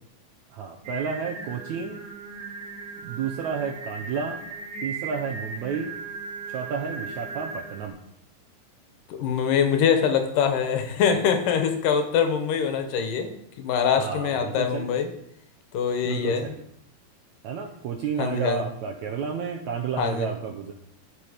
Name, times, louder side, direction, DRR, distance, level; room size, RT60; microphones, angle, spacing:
voice 1, 0.5-2.0 3.0-4.4 4.8-5.9 6.5-8.0 13.9-14.9 16.0-16.6 17.4-20.7, right 6 dB, 80° right, 2 dB, 1.7 m, -31 dB
Singing, 0.8-7.9, right 4 dB, 65° right, 1.0 m, -37 dB
voice 2, 9.1-15.1 15.7-16.5 18.2-18.6 20.0-20.3, left 7 dB, 70° left, 6 dB, 2.4 m, -24 dB
13.0 x 5.8 x 5.0 m, 0.75 s
omnidirectional pair, 4.3 m